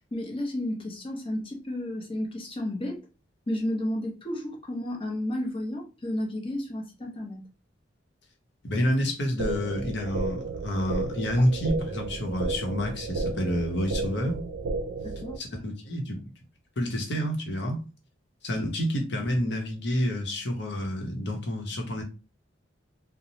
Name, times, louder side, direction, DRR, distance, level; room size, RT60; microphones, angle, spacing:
voice 1, 0.1-3.0 3.5-7.4 15.0-15.4, left 1 dB, 30° left, 0.6 m, -32 dB
voice 2, 8.6-14.4 15.4-16.2 16.8-17.8 18.4-22.0, equal, 65° left, 0.8 m, -28 dB
sound 1, 9.4-15.4, right 3 dB, 85° right, 0.4 m, -32 dB
3.0 x 2.0 x 2.7 m
head